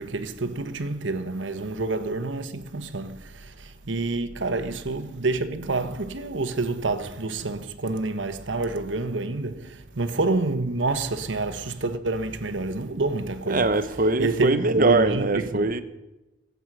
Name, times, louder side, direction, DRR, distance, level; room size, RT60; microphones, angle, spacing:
voice 1, 0.0-13.7 14.2-15.7, right 3 dB, 85° right, 1.1 m, -28 dB
voice 2, 13.5-15.8, right 2 dB, 50° right, 1.1 m, -22 dB
24.5 x 8.3 x 6.1 m
head